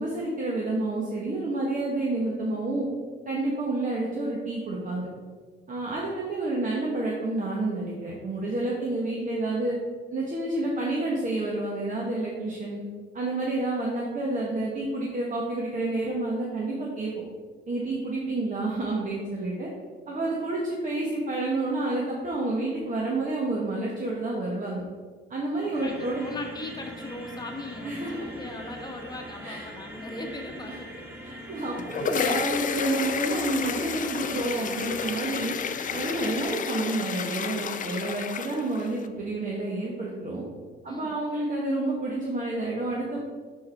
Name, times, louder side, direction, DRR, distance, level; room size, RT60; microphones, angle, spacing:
voice 1, 0.0-2.9 3.2-5.1 5.7-9.8 10.1-12.8 13.1-17.1 17.7-19.7 20.1-24.8 25.3-26.2 27.8-28.3 29.4-29.7 30.7-30.8 31.2-35.5 35.9-40.4 40.8-43.2, right 2 dB, 40° right, -3 dB, 1.2 m, -29 dB
sound 1, 25.7-36.4, equal, 10° right, 1.7 m, -42 dB
voice 2, 25.8-31.1 40.9-41.2, left 2 dB, 20° left, 1 dB, 1.2 m, -39 dB
sound 2, 31.6-39.1, left 7 dB, 40° left, 0.4 m, -31 dB
6.2 x 4.7 x 4.3 m, 1.5 s
cardioid pair, 90°, 20 cm